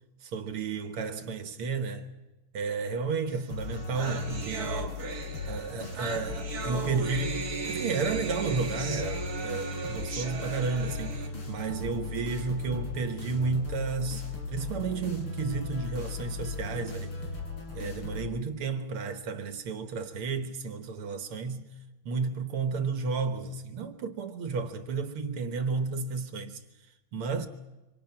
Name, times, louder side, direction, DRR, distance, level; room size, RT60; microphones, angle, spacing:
voice 1, 0.2-2.1 2.5-5.0 5.5-17.1 17.7-21.7 22.1-26.6 27.1-27.5, right 4 dB, 85° right, 2.1 m, -32 dB
sound 1, 3.4-3.5 3.7-11.3, right 5 dB, 45° right, 2.3 m, -37 dB
sound 2, 3.5-18.3, left 4 dB, 80° left, 4.8 m, -37 dB
26.5 x 24.5 x 5.8 m
omnidirectional pair, 2.3 m